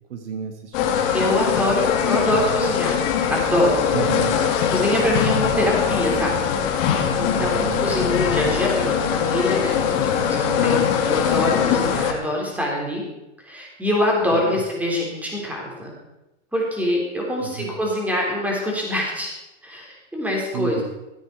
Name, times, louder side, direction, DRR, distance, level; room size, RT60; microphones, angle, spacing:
voice 1, 0.1-1.6 2.3-2.4 3.9-4.4 7.4-7.9 14.3-14.6 17.4-17.7 20.5-20.8, right 8 dB, 70° right, 5 dB, 1.8 m, -31 dB
sound 1, 0.7-12.1, left 8 dB, 45° left, 2.0 m, -21 dB
voice 2, 1.1-3.0 3.3-3.9 4.7-13.0 13.4-16.0 16.5-19.3 19.6-20.8, left 1 dB, 5° right, -2 dB, 3.8 m, -24 dB
14.5 x 8.8 x 4.7 m, 1.0 s
hypercardioid pair, 115°, 37 cm